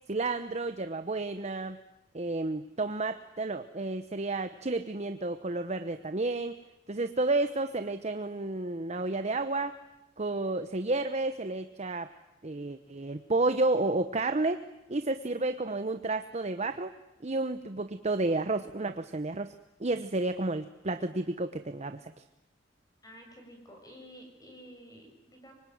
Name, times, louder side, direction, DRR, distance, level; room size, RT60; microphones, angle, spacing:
voice 1, 0.1-1.8 2.1-6.6 6.9-9.8 10.2-12.1 12.4-14.6 14.9-16.9 17.2-19.5 19.8-22.1, right 2 dB, 35° right, 9 dB, 0.9 m, -31 dB
voice 2, 23.0-25.5, equal, 20° left, 3 dB, 6.9 m, -51 dB
25.0 x 24.5 x 9.4 m, 0.94 s
head